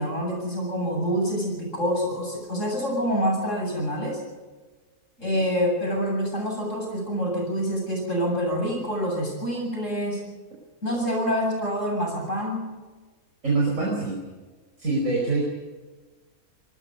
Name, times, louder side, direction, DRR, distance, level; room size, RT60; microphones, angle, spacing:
voice 1, 0.0-4.2 5.2-10.2 10.8-12.7, equal, 55° left, 1 dB, 8.1 m, -26 dB
voice 2, 13.4-14.2 14.8-15.4, right 3 dB, 55° right, -3 dB, 5.3 m, -25 dB
25.0 x 20.0 x 5.3 m, 1.3 s
omnidirectional pair, 1.6 m